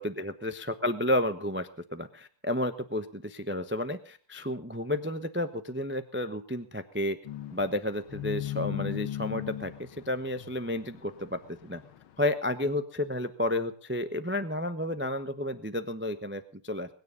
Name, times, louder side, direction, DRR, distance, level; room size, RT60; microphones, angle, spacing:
voice 1, 0.0-7.2 7.5-11.8 12.2-16.9, left 1 dB, 15° right, 10 dB, 0.3 m, -31 dB
sound 1, 7.3-12.1, left 13 dB, 75° left, 1.9 m, -38 dB
21.5 x 9.9 x 5.3 m, 0.43 s
omnidirectional pair, 2.3 m